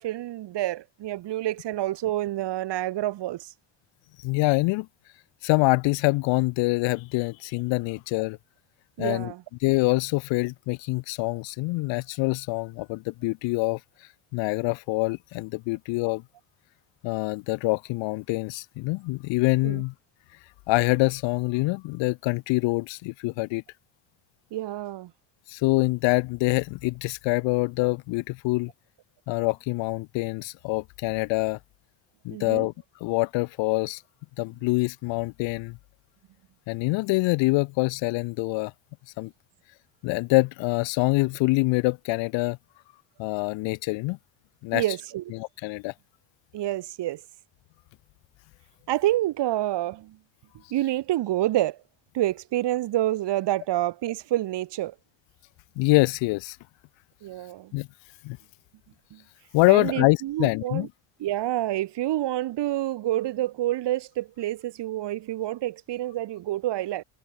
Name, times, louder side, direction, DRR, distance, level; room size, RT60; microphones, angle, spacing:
voice 1, 0.0-3.5 9.0-9.4 19.6-19.8 24.5-25.1 32.3-32.7 44.7-45.2 46.5-47.2 48.9-50.2 50.7-51.8 52.1-54.9 57.2-57.7 59.1-59.2 59.7-60.9 61.2-67.0, right 14 dB, 65° right, 3.3 m, -28 dB
voice 2, 4.2-4.9 5.4-8.4 9.0-9.3 9.6-13.8 14.3-16.2 17.0-19.9 20.7-23.6 25.5-28.7 29.3-31.6 32.2-32.7 33.0-34.0 34.4-35.8 36.7-38.7 39.2-39.3 40.0-42.6 43.2-44.2 44.6-44.8 45.3-45.9 55.8-56.6 57.7-57.9 58.2-58.4 59.5-60.9, left 23 dB, 75° left, 0.7 m, -25 dB
cardioid pair, 115°, 45 cm